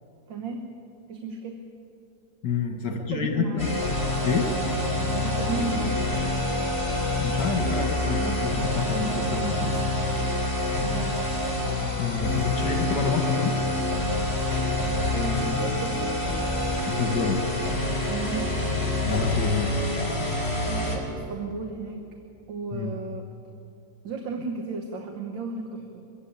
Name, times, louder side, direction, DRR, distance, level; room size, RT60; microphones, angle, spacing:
voice 1, 0.3-0.7 1.1-1.6 2.9-3.7 5.1-6.3 10.8-11.2 15.1-16.2 18.1-18.6 20.7-22.1 22.5-23.3 24.0-26.1, right 4 dB, 75° right, 3 dB, 2.0 m, -34 dB
voice 2, 2.4-3.7 4.2-4.5 7.2-9.7 12.0-13.6 16.9-17.4 19.1-19.9 22.7-22.9, left 5 dB, 65° left, 3 dB, 2.1 m, -28 dB
sound 1, 3.6-21.0, left 1 dB, 30° left, 4.3 m, -27 dB
23.5 x 15.0 x 8.7 m, 2.7 s
omnidirectional pair, 2.0 m